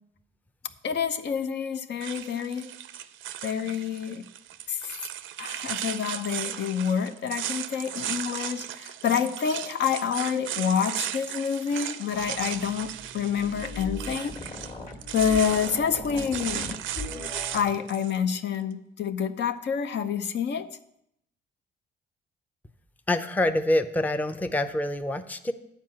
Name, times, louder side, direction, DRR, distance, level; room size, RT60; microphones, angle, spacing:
voice 1, 0.8-2.7 3.4-4.3 4.7-4.9 5.4-14.4 15.1-16.7 17.5-20.8, left 7 dB, 60° left, 9 dB, 0.6 m, -28 dB
sound 1, 2.0-18.2, right 11 dB, 80° right, 0.5 m, -36 dB
sound 2, 12.1-17.8, left 2 dB, 40° left, 1.5 m, -39 dB
voice 2, 23.1-25.5, left 1 dB, 10° left, 9 dB, 0.6 m, -26 dB
9.0 x 4.7 x 7.6 m, 0.78 s
cardioid pair, 90°, 20 cm